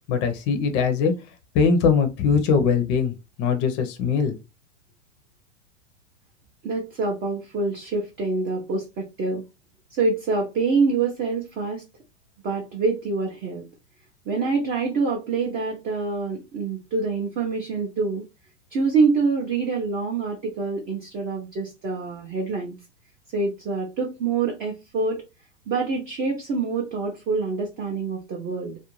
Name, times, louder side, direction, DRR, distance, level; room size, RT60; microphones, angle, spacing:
voice 1, 0.1-1.2 1.5-4.4, left 6 dB, 30° left, 0.6 m, -21 dB
voice 2, 6.6-9.4 9.9-11.8 12.4-13.7 14.3-18.2 18.7-22.8 23.3-25.2 25.7-28.8, right 4 dB, 25° right, 0.5 m, -26 dB
2.5 x 2.2 x 3.0 m
hypercardioid pair, 125°, 37 cm